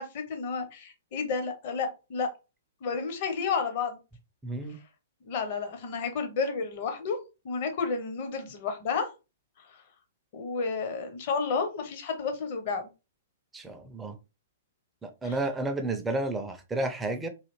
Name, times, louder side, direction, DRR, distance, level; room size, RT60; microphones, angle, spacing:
voice 1, 0.0-2.3 2.8-4.0 5.3-7.2 7.4-9.1 10.3-12.9 15.2-15.4, left 5 dB, 40° left, 6 dB, 0.8 m, -31 dB
voice 2, 4.4-4.8 13.5-14.2 15.0-17.3, right 2 dB, 10° right, 6 dB, 0.5 m, -31 dB
3.2 x 2.4 x 3.1 m, 0.28 s
figure-of-eight pair, 110°, 0 cm